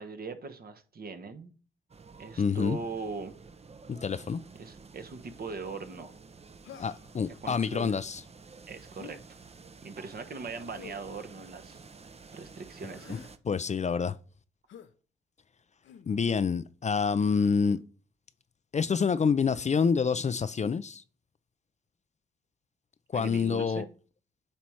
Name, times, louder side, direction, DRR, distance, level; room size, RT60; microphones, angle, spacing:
voice 1, 0.0-1.5 2.2-3.4 4.6-6.1 7.4-8.0 8.7-9.2 9.8-11.8 12.3-13.2 23.1-23.9, right 4 dB, 50° right, 1.1 m, -40 dB
sound 1, 1.9-13.4, right 4 dB, 30° right, 0.7 m, -51 dB
voice 2, 2.4-2.8 3.9-4.4 6.8-8.2 13.1-14.2 16.1-17.8 18.7-21.0 23.1-23.8, left 6 dB, 35° left, 0.5 m, -27 dB
Human voice, 6.6-7.2 8.9-9.2 10.7-11.1 12.8-13.3 14.7-14.9 15.8-16.1 17.2-17.8 19.4-19.7, left 8 dB, 65° left, 0.7 m, -50 dB
8.6 x 3.0 x 4.8 m
hypercardioid pair, 45°, 20 cm